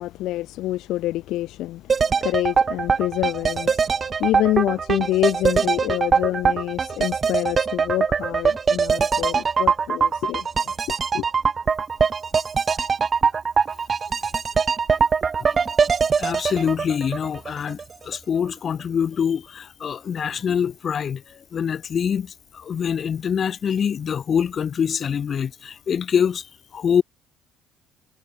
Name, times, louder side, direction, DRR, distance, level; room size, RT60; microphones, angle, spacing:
voice 1, 0.0-1.9 2.2-3.8 4.2-10.5 11.1-11.2, left 16 dB, 75° left, 1.7 m, -26 dB
sound 1, 1.9-17.8 18.1-18.2, right 5 dB, 35° right, 2.5 m, -22 dB
voice 2, 16.2-27.0, left 7 dB, 45° left, 4.5 m, -25 dB
cardioid pair, 100°, 0 cm